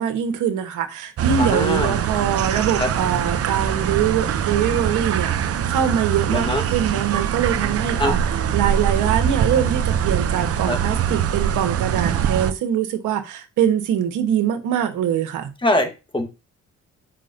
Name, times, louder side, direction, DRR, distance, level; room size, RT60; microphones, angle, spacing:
voice 1, 0.0-15.5, right 9 dB, 85° right, 1.3 m, -23 dB
sound 1, 1.2-12.5, right 8 dB, 50° right, 0.7 m, -23 dB
voice 2, 1.4-2.0 2.8-2.9 6.3-6.6 8.0-8.1 10.7-10.8 15.6-16.3, left 1 dB, 15° left, 1.4 m, -22 dB
7.3 x 5.2 x 2.7 m
cardioid pair, 90°, 30 cm